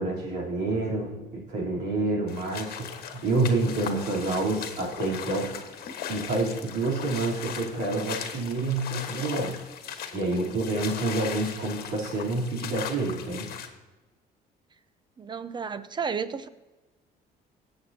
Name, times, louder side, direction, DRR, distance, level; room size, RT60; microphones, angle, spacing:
voice 1, 0.0-5.8 6.1-9.6 10.1-13.5, right 2 dB, 90° right, -3 dB, 3.5 m, -28 dB
sound 1, 2.3-13.7, left 8 dB, 65° left, 1.4 m, -38 dB
voice 2, 15.2-16.5, right 6 dB, 25° right, 12 dB, 0.7 m, -32 dB
18.5 x 7.9 x 2.8 m, 1.1 s
cardioid pair, 110°, 17 cm